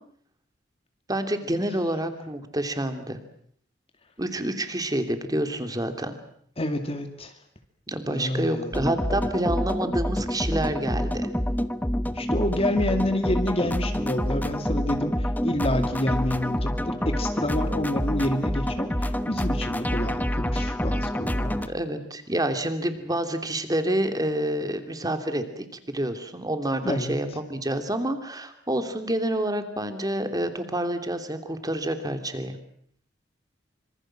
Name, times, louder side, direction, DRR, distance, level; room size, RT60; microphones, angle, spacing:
voice 1, 1.1-3.2 4.2-6.2 7.9-11.3 21.7-32.6, right 1 dB, 20° right, 8 dB, 3.0 m, -28 dB
voice 2, 6.6-7.3 8.1-8.7 12.1-21.7 26.8-27.1, left 1 dB, 35° left, 6 dB, 2.3 m, -28 dB
sound 1, 8.7-21.7, equal, 10° left, 1.2 m, -27 dB
26.0 x 26.0 x 7.7 m, 0.64 s
head